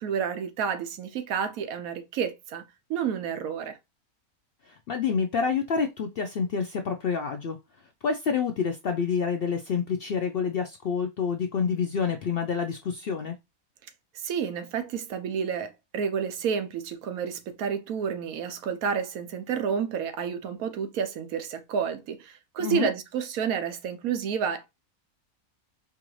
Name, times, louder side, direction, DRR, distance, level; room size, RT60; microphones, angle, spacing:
voice 1, 0.0-2.6 2.9-3.8 14.1-24.6, right 7 dB, 75° right, 1.1 m, -30 dB
voice 2, 4.7-7.6 8.0-13.3 22.6-22.9, left 6 dB, 70° left, 0.5 m, -28 dB
4.6 x 2.5 x 3.0 m
omnidirectional pair, 1.5 m